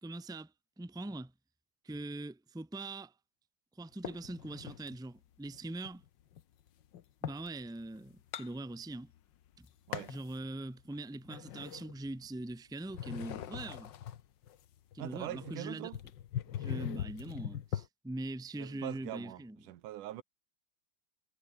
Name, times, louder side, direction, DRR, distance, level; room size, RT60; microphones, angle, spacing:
voice 1, 0.0-0.5 0.8-1.3 1.8-3.1 3.7-6.0 7.2-9.1 9.6-9.7 10.1-13.9 14.9-15.9 16.6-19.6, right 2 dB, ahead, 1.3 m, -42 dB
sound 1, 4.0-5.0 5.5-7.5 7.9-9.2 9.5-10.3 10.8-12.5 12.9-17.9, left 10 dB, 85° left, 1.0 m, -41 dB
voice 2, 15.0-16.0 18.6-20.2, right 14 dB, 85° right, 2.6 m, -43 dB
omnidirectional pair, 3.5 m